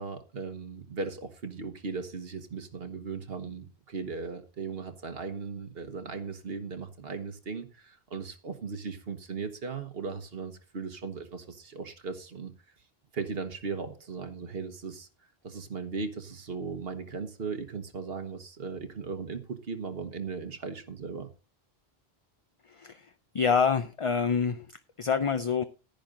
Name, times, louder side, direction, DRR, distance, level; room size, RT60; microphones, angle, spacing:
voice 1, 0.0-12.5 13.1-15.1 15.4-21.3, right 5 dB, 65° right, 1.4 m, -37 dB
voice 2, 22.7-23.1 23.3-24.7 25.0-25.6, left 6 dB, 40° left, 0.5 m, -26 dB
10.5 x 10.5 x 3.8 m
omnidirectional pair, 1.1 m